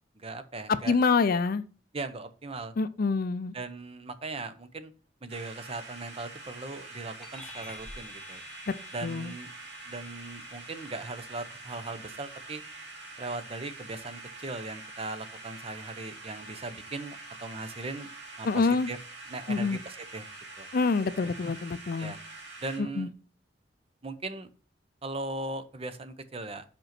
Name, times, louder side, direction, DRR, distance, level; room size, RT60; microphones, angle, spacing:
voice 1, 0.2-1.0 1.9-2.7 3.5-4.9 5.2-8.4 8.9-9.5 9.8-12.6 13.2-18.1 18.4-19.0 19.3-20.2 20.6-20.7 22.0-22.2 22.6-23.1 24.0-24.5 25.0-26.6, right 3 dB, 30° right, 0.7 m, -38 dB
voice 2, 0.9-1.6 2.8-3.5 8.7-8.8 9.0-9.3 18.4-18.9 19.5-19.8 20.7-22.1 22.8-23.1, left 4 dB, 55° left, 0.5 m, -26 dB
sound 1, 5.3-22.8, right 3 dB, 65° right, 2.6 m, -45 dB
sound 2, 7.2-17.1, left 2 dB, 5° left, 1.3 m, -52 dB
5.4 x 5.2 x 5.8 m
head